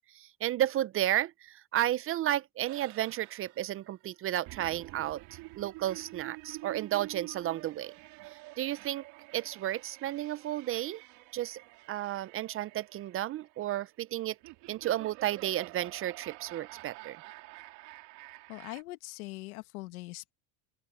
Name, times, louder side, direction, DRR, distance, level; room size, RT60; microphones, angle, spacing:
voice 1, 0.1-5.2 5.6-7.9 8.3-9.1 9.3-11.0 11.3-11.6 11.9-14.4 14.7-17.2, right 13 dB, 35° right, 0.4 m, -32 dB
sound 1, 2.7-18.8, right 22 dB, 65° right, 3.0 m, -49 dB
voice 2, 18.5-20.3, left 21 dB, 90° left, 1.6 m, -42 dB
open air
supercardioid pair, 120°, 42 cm